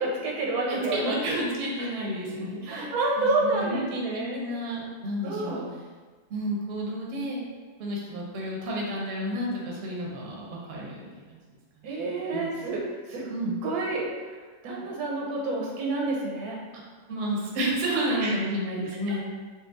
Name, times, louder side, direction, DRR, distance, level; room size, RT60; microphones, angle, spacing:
voice 1, 0.0-1.4 1.8-1.9 2.7-4.4 5.2-5.6 11.8-13.3 13.6-14.1 14.6-16.6 18.2-18.3 18.9-19.0, right 2 dB, 85° right, -2 dB, 1.2 m, -29 dB
voice 2, 0.7-2.9 3.2-5.7 6.3-7.4 7.8-11.4 11.8-11.9 12.3-12.5 13.3-13.5 17.1-19.2, equal, 60° right, -3 dB, 0.8 m, -31 dB
3.9 x 2.3 x 2.4 m, 1.4 s
omnidirectional pair, 1.6 m